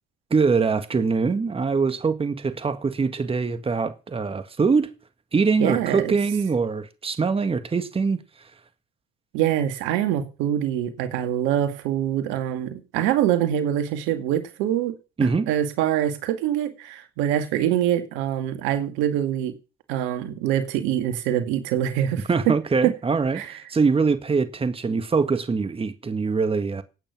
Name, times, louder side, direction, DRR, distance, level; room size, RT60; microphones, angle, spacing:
voice 1, 0.3-4.9 5.3-8.2 15.2-15.5 22.3-26.8, right 4 dB, 30° right, 1.8 m, -23 dB
voice 2, 5.6-6.1 9.3-14.9 15.5-19.5 19.9-22.5 22.8-22.9 23.3-23.5, right 11 dB, 85° right, 2.3 m, -24 dB
16.5 x 8.9 x 6.1 m
supercardioid pair, 65°, 19 cm